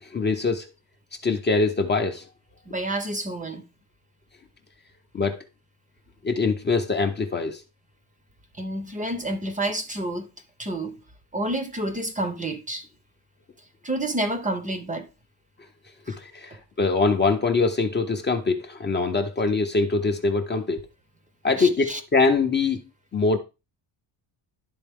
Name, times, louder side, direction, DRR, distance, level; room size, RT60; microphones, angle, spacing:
voice 1, 0.0-0.7 1.2-2.3 5.1-5.4 6.2-7.6 16.1-20.9 21.4-22.8 23.1-23.4, left 4 dB, 25° left, 0.5 m, -23 dB
voice 2, 2.7-3.6 8.6-10.3 10.6-11.0 11.3-12.9 13.8-15.1 16.1-16.2 16.5-16.6 21.6-22.0, right 1 dB, 15° right, 0.6 m, -29 dB
11.0 x 3.9 x 3.4 m
cardioid pair, 165°, 45 cm